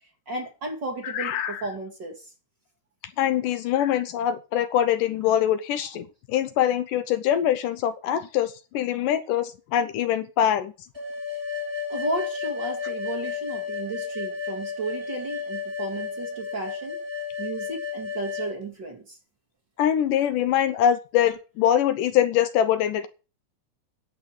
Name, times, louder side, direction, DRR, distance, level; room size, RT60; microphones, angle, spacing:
voice 1, 0.3-2.3 11.9-17.0 17.4-19.2, right 3 dB, 35° right, 2.2 m, -34 dB
voice 2, 1.1-1.6 3.2-10.7 19.8-23.1, left 10 dB, 75° left, 2.3 m, -23 dB
sound 1, 10.9-18.5, left 6 dB, 5° right, 5.4 m, -32 dB
11.0 x 6.9 x 7.6 m
omnidirectional pair, 4.1 m